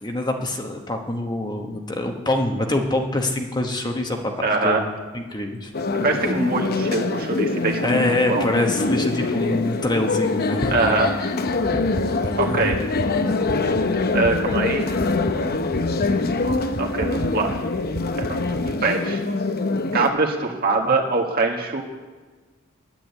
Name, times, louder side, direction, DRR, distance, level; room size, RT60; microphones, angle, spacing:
voice 1, 0.0-4.3 4.6-4.9 5.1-5.7 7.8-11.1 12.2-12.7, left 1 dB, 20° left, 3 dB, 1.1 m, -25 dB
voice 2, 4.4-4.8 6.0-8.5 10.7-11.1 12.4-12.8 14.1-14.8 16.8-17.5 18.2-19.2 19.9-21.8, right 3 dB, 45° right, 1 dB, 1.8 m, -23 dB
sound 1, 5.7-20.1, left 3 dB, 50° left, 0.7 m, -24 dB
sound 2, 11.6-18.7, right 2 dB, 30° right, 0.5 m, -34 dB
10.0 x 9.1 x 8.4 m, 1.4 s
head